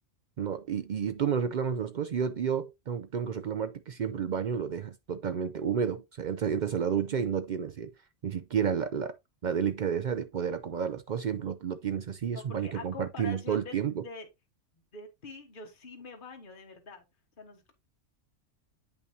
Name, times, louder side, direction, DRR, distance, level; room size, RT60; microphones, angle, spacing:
voice 1, 0.4-7.9 8.2-9.1 9.4-14.0, right 7 dB, 60° right, 0.5 m, -31 dB
voice 2, 12.3-13.8 14.0-14.3 14.9-17.0 17.4-17.7, left 4 dB, 45° left, 1.5 m, -45 dB
8.4 x 5.5 x 2.7 m
omnidirectional pair, 1.2 m